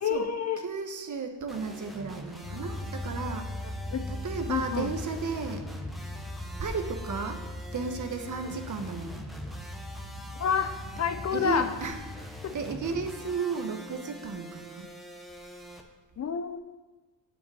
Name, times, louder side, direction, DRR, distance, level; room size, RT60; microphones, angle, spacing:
voice 1, 0.0-0.6 3.9-4.1 4.5-4.9 10.4-11.7 12.4-12.5 16.2-16.6, left 7 dB, 40° left, 9 dB, 0.7 m, -28 dB
voice 2, 0.6-3.5 4.1-5.7 6.6-7.4 7.7-9.3 11.3-14.9, right 4 dB, 45° right, 6 dB, 1.4 m, -34 dB
sound 1, 1.5-15.8, equal, ahead, 1.2 m, -46 dB
sound 2, 2.4-13.1, left 1 dB, 80° left, 2.2 m, -39 dB
7.2 x 6.6 x 7.8 m, 1.2 s
cardioid pair, 85°, 43 cm